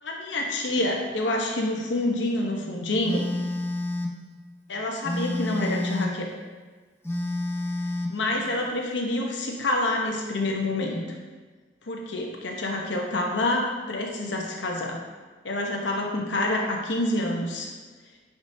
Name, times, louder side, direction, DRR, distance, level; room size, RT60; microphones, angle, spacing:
voice 1, 0.0-3.3 4.7-6.3 8.1-11.0 11.9-15.0 15.4-17.7, left 1 dB, 75° left, 0 dB, 0.9 m, -27 dB
Telephone, 3.0-4.2 5.0-6.2 7.0-8.2, left 1 dB, 15° left, 0.5 m, -29 dB
10.5 x 5.0 x 2.7 m, 1.4 s
head